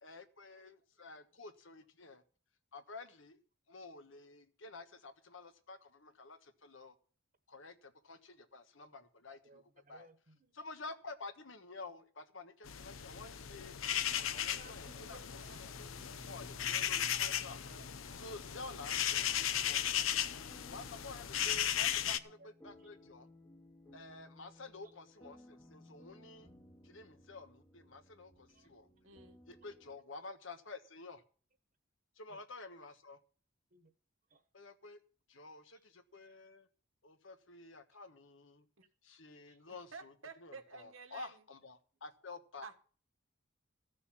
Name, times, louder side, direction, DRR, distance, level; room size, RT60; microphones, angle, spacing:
voice 1, 0.0-2.2 2.7-3.4 3.7-7.0 7.5-10.1 10.5-13.7 14.2-15.9 16.2-17.6 18.1-19.8 20.7-23.3 23.9-26.5 26.8-28.9 29.5-31.2 32.2-33.2 34.5-35.0 35.3-36.7 37.0-38.7 39.0-40.1 40.4-42.7, left 3 dB, 70° left, 1.3 m, -51 dB
voice 2, 9.3-10.6 14.1-16.3 17.7-18.2 18.7-20.1 21.7-22.5 22.7-23.1 28.5-28.7 32.3-32.4 33.7-33.9 34.3-34.4 39.5-39.7, right 2 dB, 45° right, 1.3 m, -64 dB
sound 1, 12.6-22.2, left 10 dB, 85° left, 0.8 m, -36 dB
sound 2, 14.1-30.0, left 1 dB, 15° left, 1.2 m, -59 dB
voice 3, 29.0-29.4 38.8-38.9 39.9-41.4 42.6-42.8, right 4 dB, 85° right, 1.7 m, -52 dB
14.5 x 6.9 x 7.2 m
head